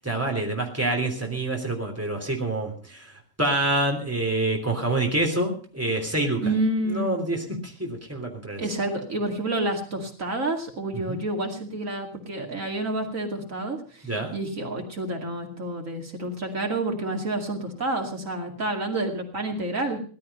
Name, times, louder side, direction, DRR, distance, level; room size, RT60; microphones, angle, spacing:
voice 1, 0.0-3.1 3.4-6.4 6.9-8.6 11.1-11.2 14.0-14.3, right 2 dB, 10° right, 1 dB, 3.2 m, -27 dB
voice 2, 6.4-7.2 8.6-20.0, right 2 dB, 80° right, 2 dB, 2.8 m, -29 dB
17.5 x 12.0 x 5.5 m, 0.42 s
omnidirectional pair, 1.4 m